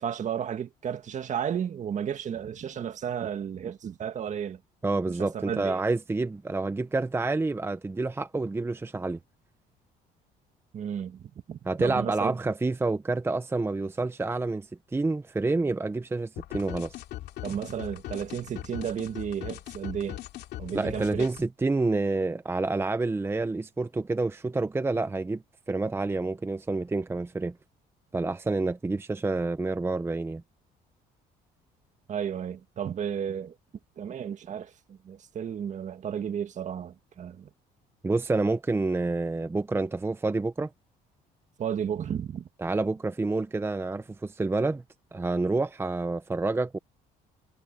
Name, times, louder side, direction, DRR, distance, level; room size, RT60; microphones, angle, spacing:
voice 1, 0.0-4.6 5.1-5.8 10.7-12.4 17.4-20.2 20.6-21.3 32.1-33.5 34.0-37.5 41.6-42.5, right 8 dB, 45° right, 1.8 m, -33 dB
voice 2, 4.8-9.2 11.7-17.0 20.7-25.4 25.7-27.5 28.1-30.4 38.0-40.7 42.6-44.8 45.1-46.8, right 3 dB, 15° right, 0.8 m, -28 dB
sound 1, 16.4-21.4, left 14 dB, 80° left, 2.7 m, -40 dB
cardioid pair, 110°, 17 cm